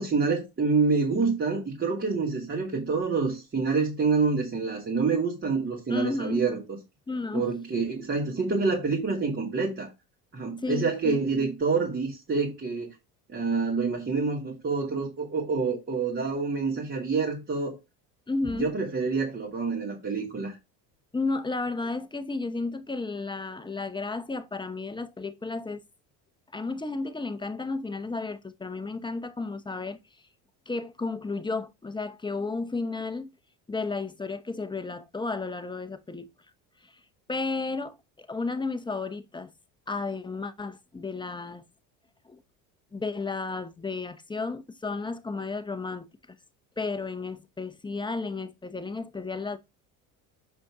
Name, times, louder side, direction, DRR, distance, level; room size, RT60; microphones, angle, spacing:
voice 1, 0.0-6.6 7.3-9.9 10.3-12.9 13.3-17.8 18.5-20.6, right 4 dB, 30° right, 2.7 m, -27 dB
voice 2, 5.9-6.5 7.1-7.5 8.0-8.1 10.6-11.2 18.3-18.7 21.1-25.8 26.5-30.0 30.7-33.3 33.7-36.3 36.8-36.9 37.3-39.5 39.9-41.6 42.2-42.4 42.9-46.4 46.8-49.6, left 3 dB, 10° left, 0.9 m, -33 dB
6.9 x 5.1 x 3.7 m
supercardioid pair, 85°, 42 cm